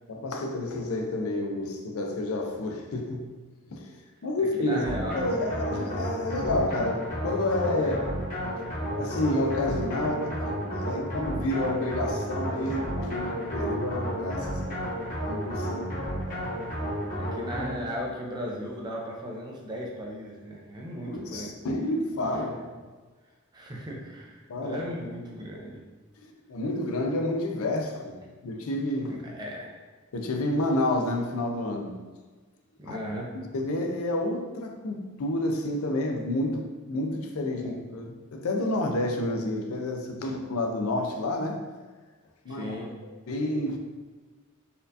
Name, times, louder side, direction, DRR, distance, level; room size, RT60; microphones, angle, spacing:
voice 1, 0.1-3.3 3.7-4.0 4.2-4.9 5.1-8.0 9.0-14.8 15.2-16.0 21.0-22.8 24.5-24.8 26.2-29.2 30.1-32.0 32.9-33.0 33.3-41.6 42.5-43.8, left 1 dB, 80° left, 4 dB, 0.5 m, -30 dB
voice 2, 4.6-5.2 7.8-8.0 17.1-21.5 23.5-25.8 29.1-29.8 32.8-33.3 37.6-37.7 40.2-40.3 42.5-42.9, equal, 20° right, -2 dB, 0.5 m, -36 dB
sound 1, 4.8-18.0, equal, 40° left, 0.9 m, -32 dB
4.2 x 2.4 x 2.6 m, 1.3 s
head